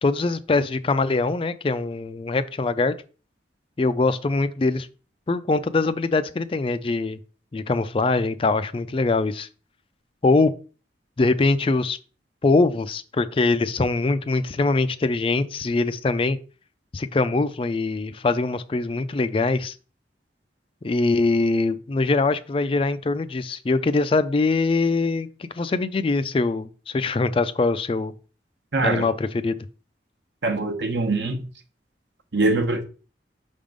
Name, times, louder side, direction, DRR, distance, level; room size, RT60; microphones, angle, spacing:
voice 1, 0.0-2.9 3.8-4.9 5.3-7.2 7.5-9.5 10.2-10.5 11.2-12.0 12.4-16.4 16.9-19.8 20.8-28.1 28.8-29.6, left 3 dB, 30° left, 0.4 m, -23 dB
voice 2, 28.7-29.1 30.4-31.4 32.3-32.8, right 2 dB, 80° right, 1.0 m, -23 dB
5.8 x 3.6 x 5.1 m
head